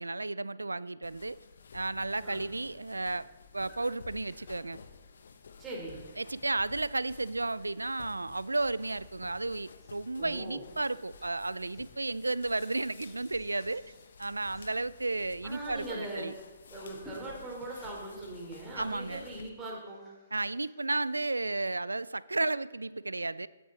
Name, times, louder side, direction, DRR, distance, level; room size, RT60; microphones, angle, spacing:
voice 1, 0.0-1.4 1.7-3.3 3.5-4.8 6.2-13.9 14.2-16.3 18.8-19.3 20.3-23.5, right 2 dB, 85° right, 20 dB, 0.4 m, -33 dB
sound 1, 1.0-19.5, left 5 dB, 65° left, 1.2 m, -53 dB
sound 2, 3.3-4.6 5.7-6.3 6.9-7.0 7.8-7.9 8.5-9.0 9.8-10.1 10.6-15.9 16.2-16.3 17.0-18.4 18.8-21.7, equal, 5° left, 4.6 m, -59 dB
voice 2, 5.6-6.0 10.2-10.6 15.4-16.3 16.7-20.0, right 2 dB, 15° right, -3 dB, 3.9 m, -40 dB
16.0 x 9.2 x 4.1 m, 1.4 s
figure-of-eight pair, 130°, 0 cm